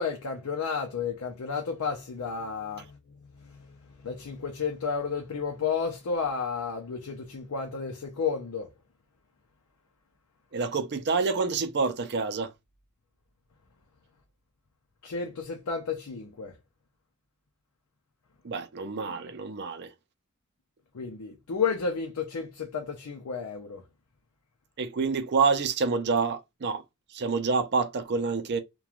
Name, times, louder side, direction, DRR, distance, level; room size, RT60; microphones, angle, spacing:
voice 1, 0.0-3.0 3.4-3.7 4.0-8.7 15.0-16.5 20.9-23.8, left 5 dB, 80° left, 0.6 m, -32 dB
voice 2, 10.5-12.5 18.4-19.9 24.8-26.8 27.1-28.6, right 4 dB, 50° right, 0.5 m, -27 dB
3.0 x 2.2 x 2.4 m
head